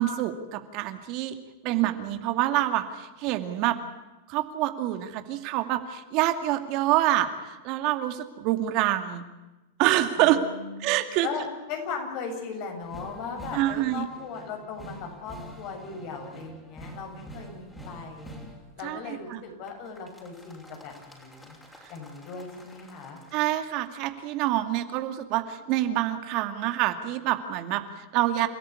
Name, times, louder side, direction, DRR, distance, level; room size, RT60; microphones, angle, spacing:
voice 1, 0.0-1.3 1.6-3.8 4.3-9.3 9.8-10.4 10.8-11.3 13.5-14.0 18.8-19.4 23.3-28.5, right 14 dB, 50° right, 8 dB, 2.3 m, -26 dB
voice 2, 10.2-10.9 11.2-18.3 18.8-21.6 21.9-23.2, left 5 dB, 50° left, 4 dB, 7.7 m, -38 dB
sound 1, 12.8-18.8 19.7-23.4, right 1 dB, 10° left, 6.0 m, -46 dB
29.5 x 13.5 x 9.8 m, 1.1 s
hypercardioid pair, 115°, 0 cm